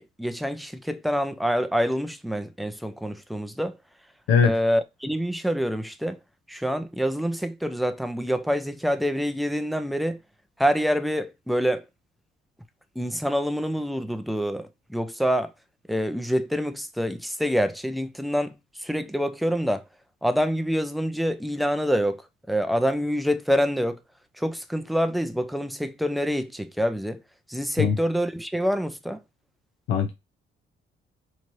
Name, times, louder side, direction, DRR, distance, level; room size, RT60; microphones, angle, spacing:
voice 1, 0.2-3.8 4.4-6.2 6.5-10.2 10.6-11.8 13.0-15.5 15.9-19.8 20.2-22.2 22.5-24.0 24.4-27.2 27.5-29.2, equal, ahead, 0.5 m, -26 dB
voice 2, 4.3-4.5 27.8-27.9 29.9-30.1, left 6 dB, 90° left, 0.6 m, -20 dB
3.0 x 2.7 x 4.5 m
cardioid pair, 90°, 20 cm